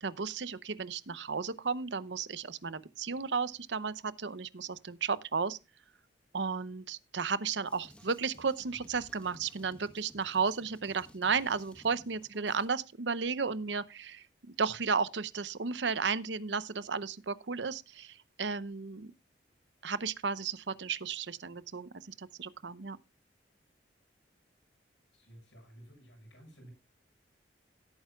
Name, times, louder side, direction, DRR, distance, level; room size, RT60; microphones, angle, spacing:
voice 1, 0.0-5.6 6.3-19.1 19.8-23.0, right 5 dB, 80° right, 0.8 m, -34 dB
Drum kit, 7.7-12.7, equal, 5° left, 1.2 m, -57 dB
voice 2, 25.1-26.7, right 1 dB, 90° left, 7.2 m, -54 dB
17.5 x 9.0 x 2.3 m
head